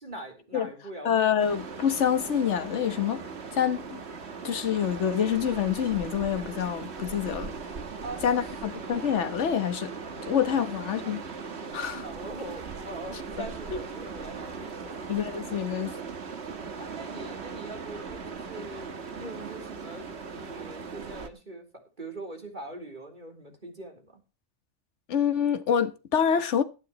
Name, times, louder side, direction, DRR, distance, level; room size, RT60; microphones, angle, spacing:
voice 1, 0.0-1.4 8.0-8.4 10.8-11.2 11.8-15.0 16.8-20.1 20.3-21.7 22.0-24.2, right 2 dB, 35° right, 3.9 m, -42 dB
voice 2, 1.0-3.2 3.5-4.0 4.4-7.5 8.2-9.9 10.3-11.2 11.7-12.1 13.4-13.5 15.1-16.0 25.1-26.6, left 8 dB, 60° left, 1.5 m, -26 dB
sound 1, 1.4-21.3, right 5 dB, 55° right, 1.6 m, -39 dB
17.0 x 11.5 x 3.1 m
omnidirectional pair, 1.4 m